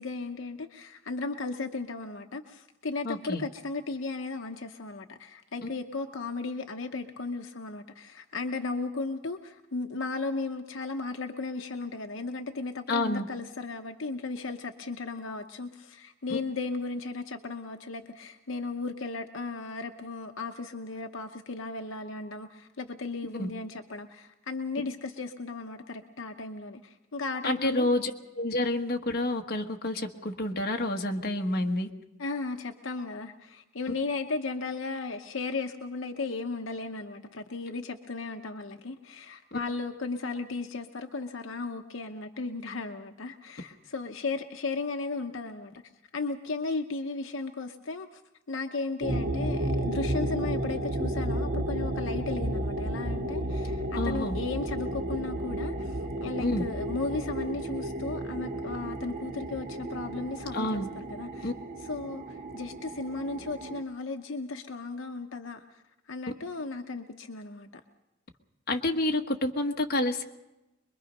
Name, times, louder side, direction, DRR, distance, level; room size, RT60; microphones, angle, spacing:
voice 1, 0.0-27.9 32.2-45.7 46.1-48.2 48.5-61.5 61.8-65.8 66.1-67.8, left 3 dB, 75° left, 5 dB, 0.9 m, -35 dB
voice 2, 3.0-3.4 12.9-13.2 23.4-23.5 27.4-31.9 54.0-54.4 56.4-56.6 60.5-60.9 61.4-61.5 68.7-70.2, left 1 dB, 50° left, 2 dB, 1.4 m, -29 dB
sound 1, 49.0-63.8, right 1 dB, 45° right, 0.9 m, -33 dB
24.0 x 22.0 x 5.3 m, 0.99 s
head